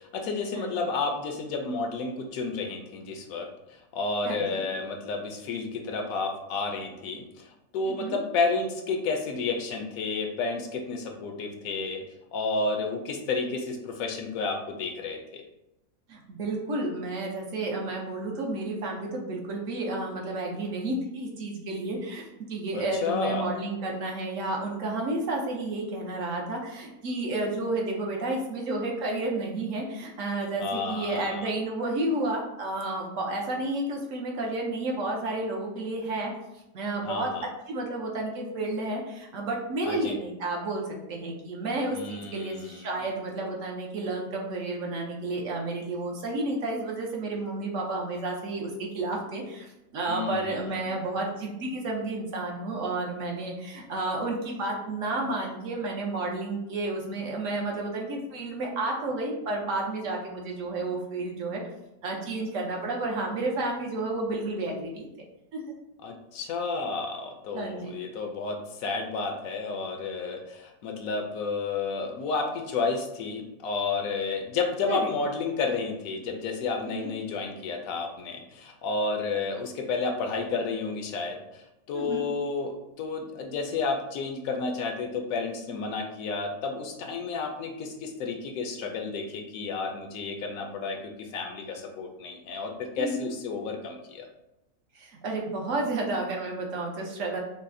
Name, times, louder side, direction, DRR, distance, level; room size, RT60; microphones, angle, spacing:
voice 1, 0.0-12.0 12.3-15.4 22.7-23.5 30.6-31.5 37.0-37.5 39.8-40.2 41.9-42.8 50.1-50.6 66.0-94.3, left 4 dB, 75° left, 4 dB, 1.0 m, -31 dB
voice 2, 4.2-4.6 7.8-8.2 16.1-36.3 36.7-37.3 37.7-40.8 41.1-49.7 49.9-61.6 62.0-65.1 65.5-65.6 67.5-67.9 74.9-75.1 77.0-77.1 81.9-82.2 93.0-93.3 94.9-97.4, right 2 dB, 65° right, 0 dB, 1.0 m, -31 dB
5.5 x 2.0 x 2.6 m, 0.91 s
omnidirectional pair, 1.5 m